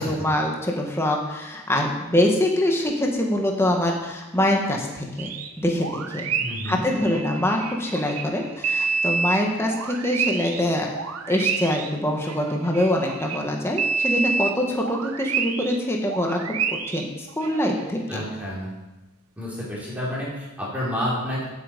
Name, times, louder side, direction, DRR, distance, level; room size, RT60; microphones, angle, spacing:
voice 1, 0.0-5.3 5.6-6.3 6.6-10.9 11.3-16.4 16.9-18.2, left 1 dB, 10° left, 0 dB, 1.7 m, -24 dB
sound 1, 5.2-5.5 5.8-10.6 10.9-13.5 13.8-15.8 16.1-17.9, right 5 dB, 90° right, 1.0 m, -28 dB
voice 2, 6.4-6.9 18.1-18.7 19.4-21.4, left 1 dB, 5° right, -7 dB, 4.3 m, -29 dB
15.0 x 8.4 x 5.3 m, 1.1 s
head